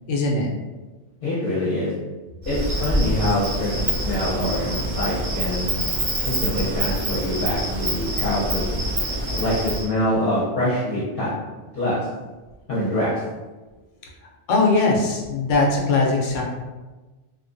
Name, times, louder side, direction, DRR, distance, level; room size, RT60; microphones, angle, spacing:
voice 1, 0.1-0.5 14.5-16.4, left 3 dB, 90° left, -1 dB, 1.0 m, -20 dB
voice 2, 1.2-1.9 2.5-5.9 6.2-8.7 9.3-11.3 11.7-12.0 12.7-13.1, left 1 dB, 55° left, -10 dB, 0.9 m, -25 dB
Insect, 2.4-9.8, right 1 dB, 40° right, 0.6 m, -26 dB
2.7 x 2.1 x 2.6 m, 1.2 s
omnidirectional pair, 1.2 m